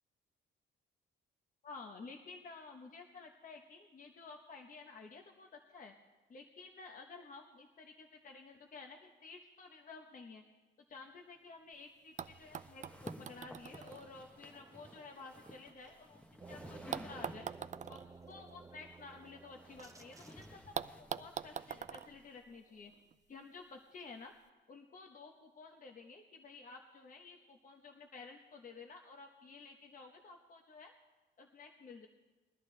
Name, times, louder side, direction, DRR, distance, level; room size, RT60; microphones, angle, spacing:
voice 1, 1.6-6.0 6.3-10.4 10.9-17.5 17.9-20.9 21.2-22.9 23.3-24.3 24.7-30.9 31.4-32.1, left 4 dB, 40° left, 3 dB, 1.0 m, -53 dB
sound 1, 11.7-11.8 12.2-16.3 16.9-19.9 20.1-20.2 20.7-23.1 24.1-24.2, right 8 dB, 35° right, 0.4 m, -46 dB
sound 2, 12.2-17.8 18.9-22.4, equal, 5° left, 1.0 m, -54 dB
sound 3, 16.4-20.9, right 4 dB, 15° right, 0.9 m, -54 dB
21.5 x 11.0 x 3.3 m, 1.2 s
cardioid pair, 90°, 20 cm